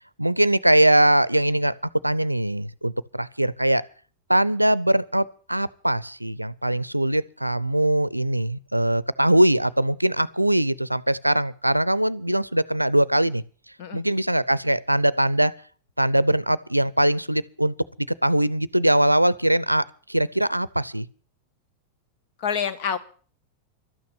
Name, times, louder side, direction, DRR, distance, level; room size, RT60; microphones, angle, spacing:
voice 1, 0.2-1.7 2.0-3.8 4.3-13.4 13.9-15.5 16.0-17.7 18.2-19.8 20.1-21.1, right 1 dB, 85° right, 0.6 m, -21 dB
voice 2, 22.4-23.0, left 7 dB, 45° left, 1.6 m, -27 dB
12.5 x 9.3 x 8.4 m
figure-of-eight pair, 90°, 0 cm